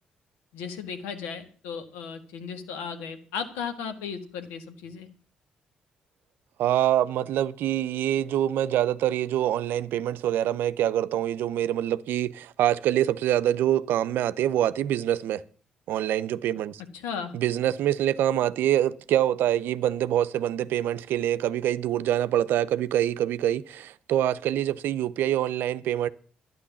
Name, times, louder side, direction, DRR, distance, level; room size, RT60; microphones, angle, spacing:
voice 1, 0.5-5.1 16.9-17.3, left 6 dB, 80° left, 1.7 m, -35 dB
voice 2, 6.6-15.4 15.9-16.8 17.3-26.1, right 11 dB, 70° right, 0.6 m, -25 dB
12.0 x 9.6 x 7.0 m
hypercardioid pair, 50°, 4 cm